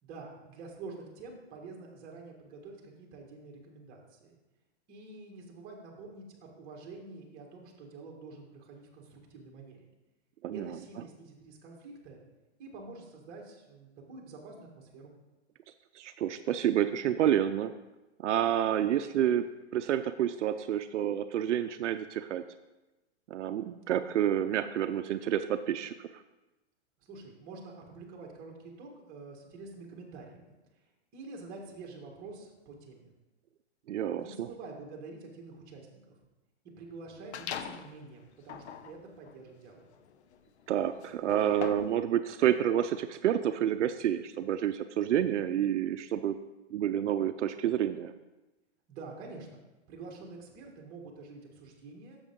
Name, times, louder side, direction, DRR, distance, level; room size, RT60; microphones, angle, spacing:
voice 1, 0.0-4.4 4.9-9.9 10.5-12.2 12.6-15.1 27.0-30.5 30.8-33.1 34.1-36.2 36.8-39.9 48.9-49.6 49.9-52.2, right 3 dB, 25° right, 0 dB, 1.8 m, -47 dB
voice 2, 10.4-10.8 15.9-17.7 18.2-19.4 19.7-22.4 23.3-25.9 33.9-34.5 40.7-46.4 46.7-48.1, right 10 dB, 85° right, 9 dB, 0.6 m, -29 dB
sound 1, 37.3-37.9 38.4-42.0, left 8 dB, 65° left, 0.8 m, -42 dB
9.9 x 7.1 x 3.7 m, 1.1 s
hypercardioid pair, 155°, 35 cm